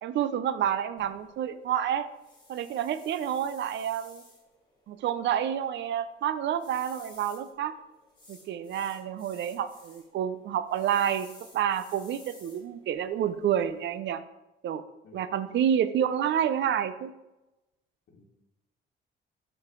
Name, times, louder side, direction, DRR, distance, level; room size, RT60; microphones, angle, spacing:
voice 1, 0.0-2.1 2.5-4.2 4.9-7.7 8.3-11.3 11.5-14.2 14.6-14.8 15.1-17.1, right 9 dB, 65° right, 12 dB, 0.5 m, -29 dB
sound 1, 1.0-14.0, left 2 dB, 20° left, 1.9 m, -56 dB
voice 2, 15.0-15.6 18.1-18.2, left 2 dB, 70° left, 0 dB, 1.3 m, -54 dB
7.2 x 3.9 x 3.8 m, 0.97 s
cardioid pair, 90°, 20 cm